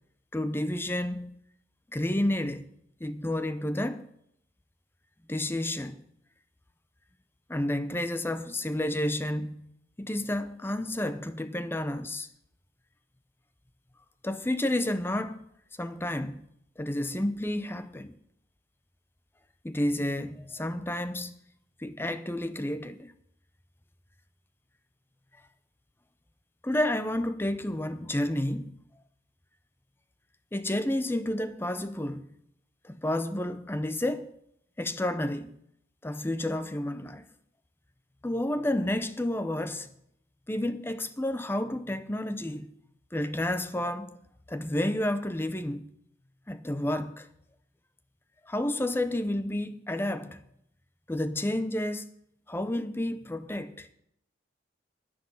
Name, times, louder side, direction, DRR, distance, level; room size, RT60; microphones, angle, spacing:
voice 1, 0.3-1.4 1.9-2.7 3.0-4.1 5.3-6.0 7.5-9.7 10.0-12.3 14.2-15.5 15.8-16.5 16.8-18.1 19.6-21.4 21.8-23.1 26.6-28.8 30.5-32.3 32.8-34.3 34.8-35.5 36.0-37.3 38.2-39.9 40.5-42.7 43.1-44.2 44.5-45.9 46.5-47.3 48.4-50.4 51.1-52.1 52.5-53.9, left 1 dB, 10° left, 0.6 m, -30 dB
10.5 x 10.0 x 5.6 m
head